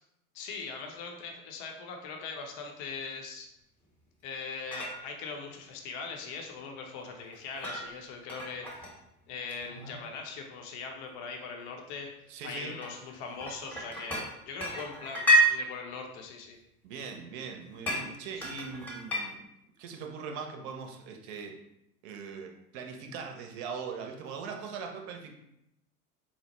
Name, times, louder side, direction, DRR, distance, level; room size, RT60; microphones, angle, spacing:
voice 1, 0.3-3.5 4.2-9.0 9.3-16.6 18.4-18.5, left 5 dB, 50° left, 2 dB, 0.7 m, -41 dB
sound 1, 4.4-4.5 4.7-5.0 7.3-7.9 8.3-8.9 9.5-10.0 11.1-11.3 11.9-12.0 12.8-14.3 14.6-15.5 17.9-18.0 18.4-19.2, right 1 dB, 5° left, 0.9 m, -29 dB
voice 2, 12.3-12.8 16.8-19.4 19.8-21.5 22.0-25.3, right 5 dB, 50° right, 4 dB, 0.7 m, -40 dB
4.1 x 2.1 x 2.9 m, 0.81 s
hypercardioid pair, 90°, 43 cm